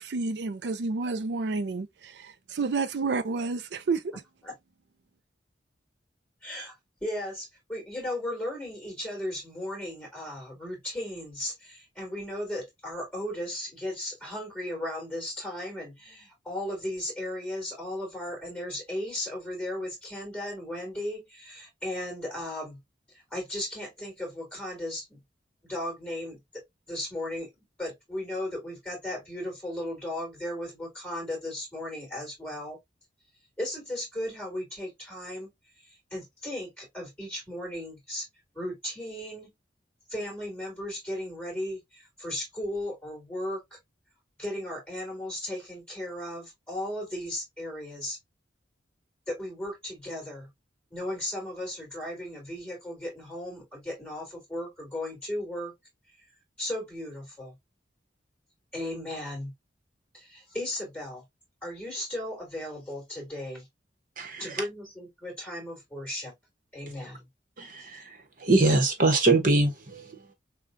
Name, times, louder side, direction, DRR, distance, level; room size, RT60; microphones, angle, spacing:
voice 1, 0.0-4.0, right 4 dB, 65° right, 0.4 m, -30 dB
voice 2, 6.4-6.8 7.0-22.8 23.1-25.2 25.6-27.5 27.8-32.8 33.6-35.5 35.8-38.3 38.5-39.5 40.1-43.8 44.4-48.2 49.3-50.5 50.9-55.7 56.6-57.6 58.7-59.5 60.1-61.2 61.6-63.7 64.4-66.3 66.7-67.3, left 1 dB, 5° left, 2.7 m, -36 dB
voice 3, 64.2-64.6 67.6-70.3, right 2 dB, 50° right, 1.0 m, -24 dB
6.5 x 2.2 x 2.6 m
head